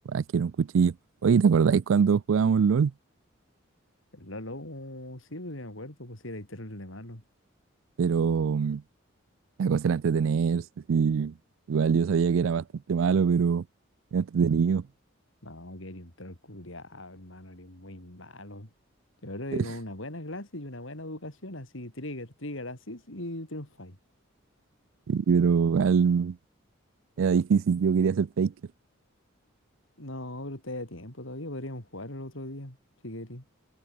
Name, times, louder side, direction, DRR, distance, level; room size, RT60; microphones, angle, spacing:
voice 1, 0.1-0.9 1.2-2.9 8.0-8.8 9.6-11.3 11.7-13.6 14.1-14.8 19.5-19.6 25.1-26.4 27.2-28.5, right 6 dB, 75° right, 0.4 m, -23 dB
voice 2, 4.1-7.2 15.4-18.7 19.2-24.0 30.0-32.8 33.0-33.4, left 1 dB, 75° left, 5.1 m, -39 dB
head